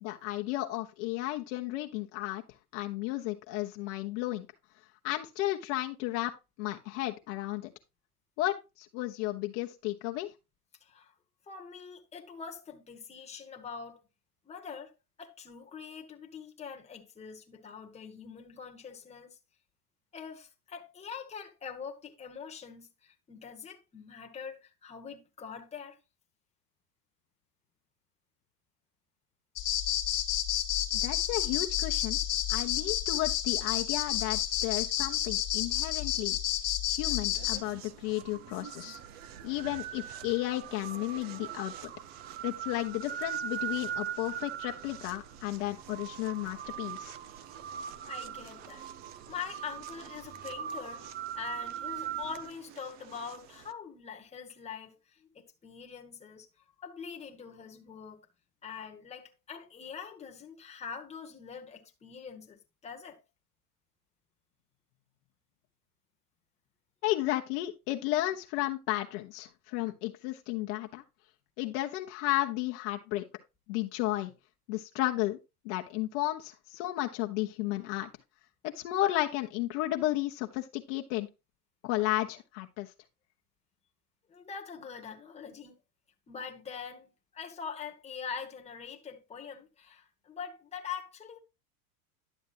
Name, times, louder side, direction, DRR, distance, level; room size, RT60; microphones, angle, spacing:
voice 1, 0.0-2.4 2.7-4.5 5.0-7.7 8.4-10.3 31.0-32.2 32.5-36.4 36.9-39.0 39.4-41.9 42.4-47.2 67.0-71.0 71.6-73.2 73.7-74.3 74.7-75.4 75.6-78.1 78.6-81.3 81.8-82.9, left 16 dB, 50° left, 1.0 m, -33 dB
voice 2, 10.8-11.1 11.5-14.0 14.4-14.9 15.2-19.4 20.1-26.0 48.0-48.8 49.3-51.1 51.4-56.5 56.8-58.2 58.6-63.2 84.3-85.8 86.3-91.4, left 6 dB, 15° left, 1.3 m, -44 dB
sound 1, 29.6-37.6, left 12 dB, 30° left, 1.4 m, -30 dB
sound 2, 37.3-53.7, right 9 dB, 25° right, 0.4 m, -41 dB
11.0 x 7.1 x 2.6 m
hypercardioid pair, 120°, 46 cm